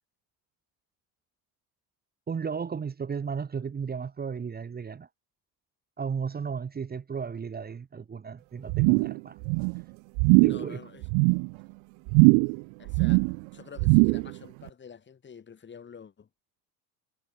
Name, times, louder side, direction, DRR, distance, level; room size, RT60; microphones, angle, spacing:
voice 1, 2.3-5.1 6.0-9.4 10.4-10.8, right 6 dB, 20° right, 1.7 m, -34 dB
sound 1, 8.7-9.2 9.4-9.8 10.2-10.7 11.0-11.5 12.1-12.6 12.9-13.4 13.8-14.3 14.7-14.8, right 40 dB or more, 65° right, 0.6 m, -21 dB
voice 2, 10.3-11.0 12.8-13.3 13.5-16.3, left 6 dB, 25° left, 2.6 m, -47 dB
supercardioid pair, 120°, 46 cm